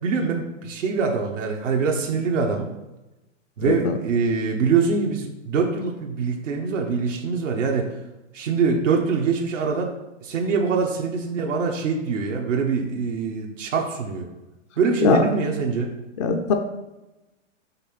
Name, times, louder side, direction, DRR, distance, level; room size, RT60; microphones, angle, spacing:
voice 1, 0.0-2.7 3.6-7.9 8.3-9.9 10.2-14.3 14.8-15.9, right 5 dB, 80° right, 0 dB, 1.2 m, -24 dB
voice 2, 3.7-4.0 15.0-15.2 16.2-16.5, left 5 dB, 25° left, 3 dB, 0.3 m, -20 dB
5.7 x 3.4 x 5.8 m, 1.0 s
hypercardioid pair, 140°, 37 cm